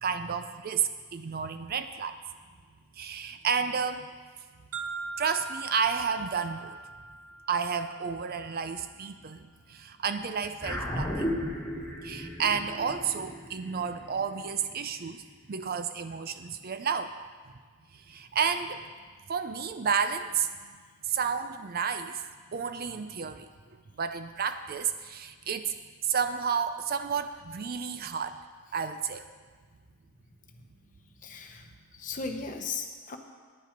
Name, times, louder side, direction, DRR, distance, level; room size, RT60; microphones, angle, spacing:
voice 1, 0.0-2.2 3.0-4.1 5.2-6.8 7.5-11.3 12.0-15.2 15.5-17.1 17.9-18.9 19.3-20.5 21.0-22.2 22.5-23.5 24.0-25.7 26.0-28.4 28.7-29.3, right 6 dB, 45° right, 9 dB, 0.5 m, -31 dB
sound 1, 4.7-8.7, right 3 dB, 75° right, 0.8 m, -41 dB
sound 2, 10.6-15.2, equal, 10° left, 2.7 m, -35 dB
voice 2, 31.2-31.7 31.9-33.2, left 5 dB, 35° left, 4 dB, 0.9 m, -37 dB
10.0 x 9.4 x 5.2 m, 1.5 s
head